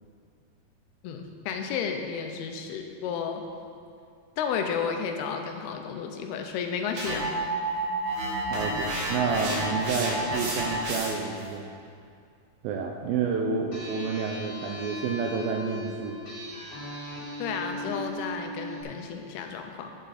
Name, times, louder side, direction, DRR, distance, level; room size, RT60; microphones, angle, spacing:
voice 1, 1.0-3.4 4.4-7.3 17.4-19.9, left 6 dB, 80° left, 5 dB, 2.7 m, -32 dB
sound 1, 7.0-11.4, right 1 dB, 65° right, 2.0 m, -30 dB
voice 2, 8.5-11.7 12.6-16.2, right 5 dB, 80° right, 2 dB, 2.2 m, -29 dB
sound 2, 13.7-18.8, left 1 dB, 25° left, 1.1 m, -38 dB
10.5 x 7.6 x 4.1 m, 2.3 s
omnidirectional pair, 4.6 m